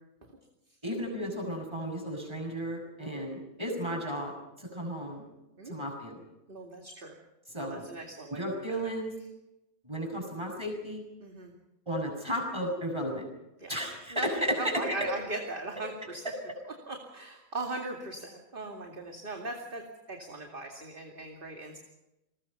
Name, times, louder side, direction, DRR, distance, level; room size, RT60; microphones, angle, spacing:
voice 1, 0.8-5.2 5.7-6.2 7.5-7.9 8.3-9.1 9.8-11.0 11.9-13.2 13.7-15.1, equal, 20° right, 2 dB, 7.0 m, -34 dB
voice 2, 6.5-7.2 7.6-8.4 11.2-11.5 13.6-13.7 14.1-14.3 14.6-16.2 16.6-19.8 20.1-21.8, right 2 dB, 35° right, 1 dB, 2.6 m, -39 dB
29.0 x 21.5 x 5.6 m, 0.95 s
omnidirectional pair, 1.5 m